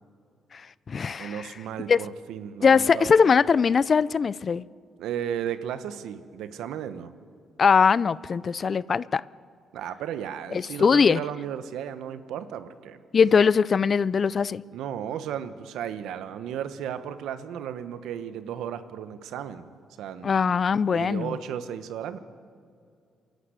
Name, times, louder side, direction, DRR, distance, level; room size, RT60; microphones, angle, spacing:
voice 1, 0.5-1.5 1.9-2.0 2.6-4.6 7.6-9.2 10.5-11.2 13.1-14.6 20.2-21.4, left 6 dB, 45° left, 0.4 m, -21 dB
voice 2, 1.2-3.3 5.0-7.1 9.7-13.0 14.7-19.7 20.0-20.3 20.9-22.2, right 9 dB, 85° right, 1.1 m, -34 dB
27.0 x 12.0 x 8.3 m
cardioid pair, 90°, 0 cm